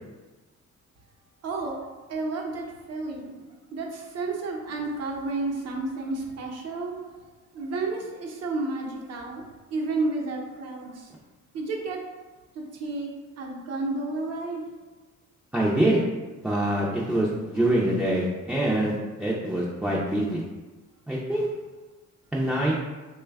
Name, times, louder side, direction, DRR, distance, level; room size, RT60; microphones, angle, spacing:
voice 1, 1.4-3.4 3.7-7.2 7.5-9.4 9.7-11.1 11.5-12.1 12.5-14.7, right 3 dB, 55° right, 0 dB, 0.7 m, -31 dB
voice 2, 15.5-16.0 16.4-20.4 21.1-21.5 22.3-22.7, right 1 dB, 5° right, -6 dB, 0.4 m, -25 dB
3.2 x 2.2 x 3.4 m, 1.2 s
cardioid pair, 90°, 30 cm